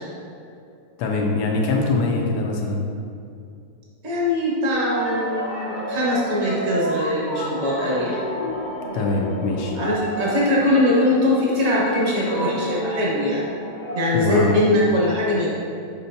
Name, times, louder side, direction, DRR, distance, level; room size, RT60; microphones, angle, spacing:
voice 1, 1.0-2.9 8.9-9.7 14.0-14.5, left 3 dB, 80° left, 0 dB, 1.3 m, -23 dB
voice 2, 4.0-8.2 9.8-13.4 13.9-15.5, left 1 dB, 45° right, -5 dB, 1.6 m, -21 dB
sound 1, 4.7-14.6, equal, 60° left, 0.5 m, -31 dB
6.8 x 5.4 x 2.7 m, 2.5 s
omnidirectional pair, 1.8 m